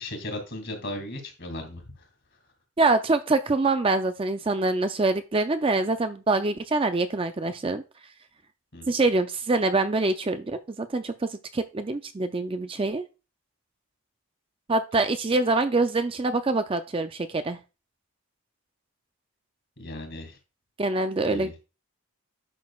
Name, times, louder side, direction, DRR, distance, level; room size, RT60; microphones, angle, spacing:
voice 1, 0.0-2.0 8.7-8.9 19.8-20.4 21.2-21.5, left 1 dB, 50° left, 4 dB, 2.5 m, -36 dB
voice 2, 2.8-7.8 8.9-13.0 14.7-17.6 20.8-21.5, right 3 dB, 25° right, 9 dB, 0.4 m, -25 dB
10.5 x 6.2 x 2.3 m, 0.30 s
head